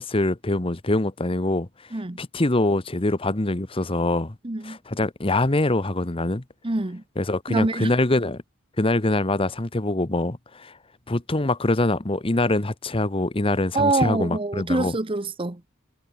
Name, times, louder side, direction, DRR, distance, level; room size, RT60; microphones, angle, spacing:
voice 1, 0.0-1.7 2.2-4.3 4.6-6.4 7.2-8.4 8.8-10.8 11.1-14.9, left 2 dB, 25° left, 1.0 m, -24 dB
voice 2, 4.4-4.8 6.6-7.0 7.5-7.9 13.7-15.6, right 2 dB, 25° right, 1.0 m, -25 dB
head